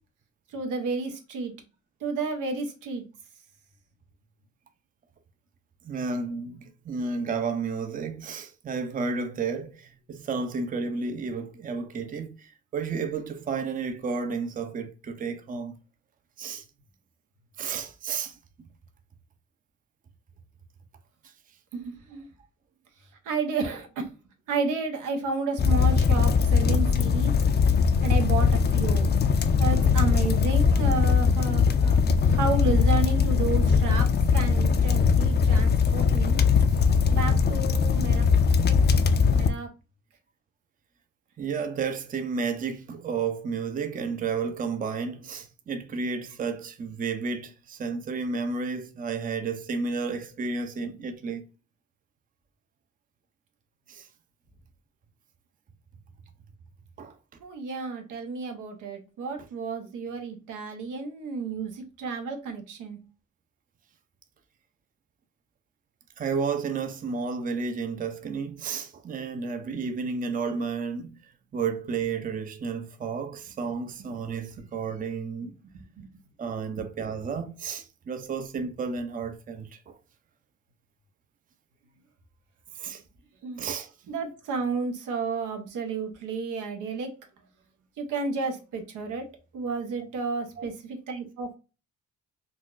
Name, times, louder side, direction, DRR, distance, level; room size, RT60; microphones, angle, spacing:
voice 1, 0.5-1.5 2.0-3.0 21.7-22.2 23.2-24.1 24.5-27.3 28.0-29.1 29.6-34.1 34.3-36.4 37.1-38.3 38.7-38.8 39.3-39.7 57.4-63.0 75.7-76.1 83.4-83.6 84.1-87.1 88.0-89.3 89.5-91.6, right 4 dB, 85° right, 0.9 m, -31 dB
voice 2, 5.8-15.7 16.4-16.6 17.6-18.4 38.1-38.2 41.4-51.5 53.9-54.1 57.0-57.1 66.2-75.6 76.4-80.0 82.8-83.0 83.6-83.9 90.6-90.7, right 5 dB, 30° right, 0.5 m, -32 dB
sound 1, 25.6-39.5, left 5 dB, 35° left, 0.4 m, -21 dB
3.9 x 2.2 x 2.4 m
cardioid pair, 90°, 30 cm